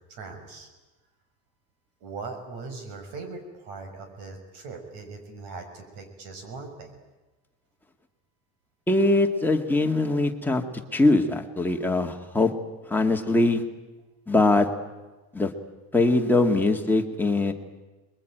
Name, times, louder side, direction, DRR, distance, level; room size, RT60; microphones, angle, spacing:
voice 1, 0.1-0.7 2.0-7.0, right 4 dB, 65° right, 6 dB, 6.5 m, -40 dB
voice 2, 8.9-10.6 10.9-12.5 12.9-13.6 14.3-14.7 15.3-15.5 15.9-17.5, left 2 dB, 5° left, 2 dB, 1.9 m, -22 dB
28.0 x 22.0 x 9.1 m, 1.2 s
cardioid pair, 160°, 39 cm